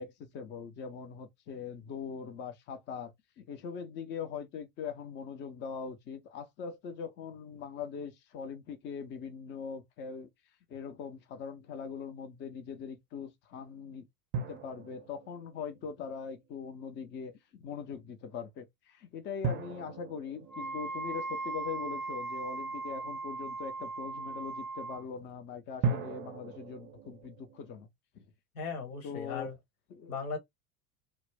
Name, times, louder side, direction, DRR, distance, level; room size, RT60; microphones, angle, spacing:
voice 1, 0.0-3.1 3.4-10.3 10.7-14.1 14.5-27.9 28.1-28.2 29.0-29.5 29.9-30.1, left 6 dB, 25° left, 0.5 m, -41 dB
sound 1, 14.3-16.6 19.4-22.4 25.8-27.7, right 4 dB, 25° right, 0.5 m, -38 dB
Wind instrument woodwind instrument, 20.5-25.0, right 3 dB, 90° left, 1.0 m, -38 dB
voice 2, 28.5-29.6 30.1-30.4, left 5 dB, 65° left, 1.2 m, -37 dB
2.3 x 2.0 x 3.3 m
figure-of-eight pair, 75°, 47 cm